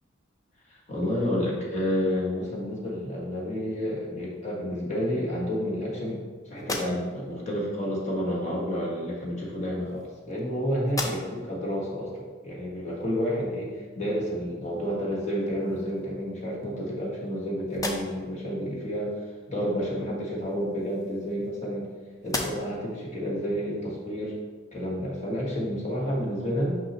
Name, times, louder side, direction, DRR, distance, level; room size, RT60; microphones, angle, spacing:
voice 1, 0.7-19.1 19.5-21.9 22.2-24.4 24.7-26.8, equal, 40° left, -4 dB, 1.4 m, -30 dB
sound 1, 6.6-7.4 8.5-8.7 9.6-10.5 10.8-11.6 12.1-12.2 14.8-14.9 15.4-16.1 16.6-17.4 17.7-18.4 20.4-21.9 22.2-22.9, left 2 dB, 20° left, 0.6 m, -37 dB
6.0 x 5.5 x 3.0 m, 1.4 s
head